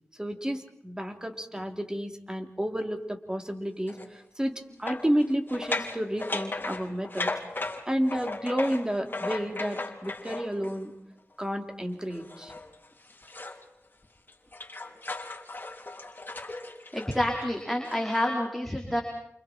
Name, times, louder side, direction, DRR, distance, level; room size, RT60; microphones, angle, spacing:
voice 1, 0.2-7.3 7.9-10.9 11.4-12.5, equal, 15° right, 4 dB, 3.6 m, -31 dB
sound 1, 3.9-4.1 4.9-10.8 12.1-13.6 14.0-18.3, left 2 dB, 45° left, 3.6 m, -37 dB
voice 2, 16.9-19.0, left 1 dB, 5° left, 0 dB, 4.7 m, -28 dB
29.5 x 29.0 x 4.6 m, 0.72 s
cardioid pair, 45°, 5 cm